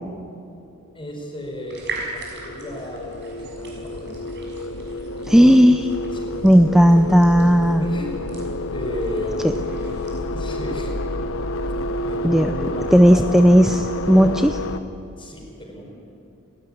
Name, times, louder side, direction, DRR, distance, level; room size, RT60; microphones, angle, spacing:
voice 1, 0.9-4.1 5.6-5.7 6.1-6.6 7.8-8.2 8.7-9.7 10.3-10.9 11.6-11.7 12.0-13.2 15.2-15.9, equal, 25° left, 1 dB, 4.9 m, -33 dB
sound 1, 1.1-14.8, left 1 dB, 65° left, 1.0 m, -29 dB
sound 2, 1.7-10.2, right 3 dB, 55° right, 6.2 m, -40 dB
voice 2, 5.3-5.9 6.4-7.8 9.4-9.5 12.2-12.5 12.9-14.6, equal, ahead, 8 dB, 0.5 m, -14 dB
29.5 x 12.5 x 9.9 m, 2.7 s
head